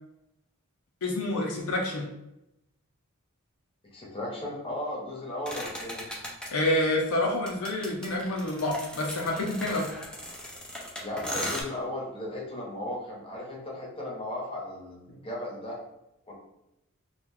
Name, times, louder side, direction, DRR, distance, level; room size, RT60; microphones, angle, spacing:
voice 1, 1.0-2.1 6.5-9.9 15.1-15.2, left 1 dB, 75° left, 0 dB, 0.5 m, -28 dB
voice 2, 3.9-6.1 11.0-15.8 16.3-16.4, left 1 dB, 25° left, -3 dB, 0.8 m, -36 dB
sound 1, 5.5-6.5 7.5-11.6, left 1 dB, 5° left, 0.4 m, -37 dB
2.9 x 2.3 x 3.7 m, 0.87 s
head